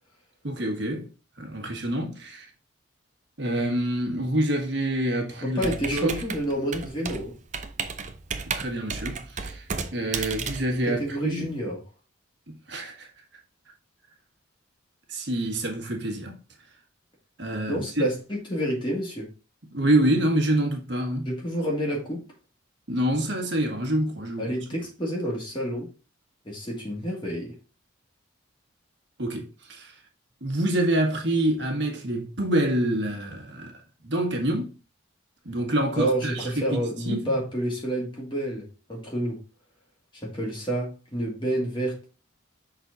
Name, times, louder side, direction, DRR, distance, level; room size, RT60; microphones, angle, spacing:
voice 1, 0.4-1.1 1.4-2.5 3.4-6.2 8.5-11.5 12.5-13.1 15.1-16.4 17.4-18.1 19.7-21.3 22.9-24.5 29.2-30.0 30.4-33.7 34.0-34.7 35.4-37.3, right 1 dB, 60° right, 1.5 m, -27 dB
voice 2, 5.4-7.4 10.9-11.8 17.7-19.3 21.3-22.3 24.4-25.9 26.4-27.5 36.0-39.4 40.1-42.0, right 1 dB, 25° left, 2.1 m, -29 dB
Computer keyboard, 5.6-11.5, right 5 dB, 35° right, 0.6 m, -34 dB
6.1 x 4.1 x 3.9 m
head